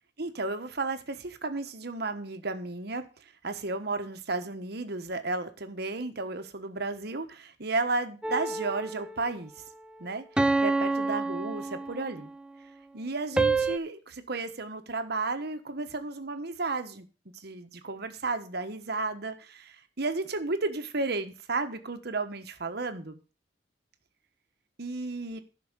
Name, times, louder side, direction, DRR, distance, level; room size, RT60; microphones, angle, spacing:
voice 1, 0.2-9.5 10.0-12.3 12.9-17.1 17.3-23.2 24.8-25.4, right 3 dB, 60° right, 8 dB, 1.3 m, -33 dB
sound 1, 8.2-9.2 10.4-12.3 13.4-13.8, right 3 dB, 5° right, 0.5 m, -28 dB
11.0 x 5.9 x 6.8 m, 0.35 s
head